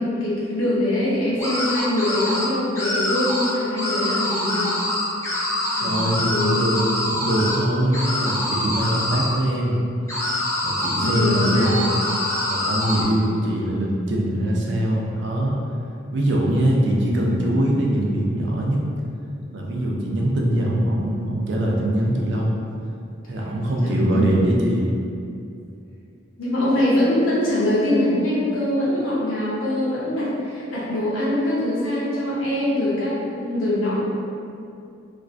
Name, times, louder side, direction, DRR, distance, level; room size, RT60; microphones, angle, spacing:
voice 1, 0.0-4.8 5.7-6.0 6.2-6.6 11.0-11.9 23.8-24.4 26.4-34.1, left 1 dB, 85° left, -8 dB, 0.7 m, -23 dB
sound 1, 1.4-2.5 2.8-3.5 3.8-7.6 7.9-9.3 10.1-13.0, left 1 dB, 15° left, 0.3 m, -25 dB
voice 2, 5.8-9.8 10.2-10.3 10.6-11.8 12.5-15.6 16.1-18.8 19.5-22.5 23.3-24.9, right 1 dB, 60° right, -2 dB, 0.4 m, -22 dB
2.4 x 2.1 x 2.4 m, 2.5 s
head